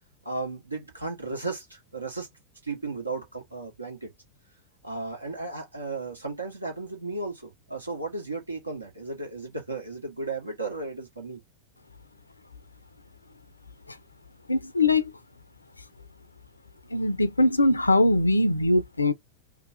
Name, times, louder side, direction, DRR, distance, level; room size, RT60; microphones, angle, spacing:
voice 1, 0.2-2.3 2.6-4.1 4.8-11.4, right 3 dB, 80° right, 1.4 m, -35 dB
voice 2, 14.5-15.1 16.9-19.1, left 2 dB, 80° left, 0.5 m, -21 dB
3.0 x 2.3 x 3.9 m
figure-of-eight pair, 90°, 0 cm